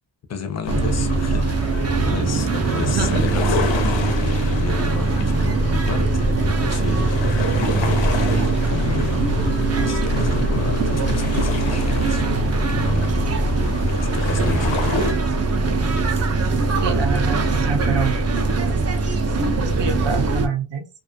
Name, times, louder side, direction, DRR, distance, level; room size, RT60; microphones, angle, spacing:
voice 1, 0.3-1.6 2.1-6.3 6.6-8.3 8.7-12.2 12.7-13.2 13.9-14.8, left 5 dB, 40° left, 0.4 m, -32 dB
sound 1, 0.6-15.1, left 4 dB, 90° left, 0.6 m, -28 dB
sound 2, 0.7-20.5, right 3 dB, 40° right, 0.4 m, -21 dB
voice 2, 2.9-3.3 16.8-18.2 19.5-20.9, right 6 dB, 75° right, 0.6 m, -25 dB
2.4 x 2.3 x 2.5 m
wide cardioid pair, 160°, 43 cm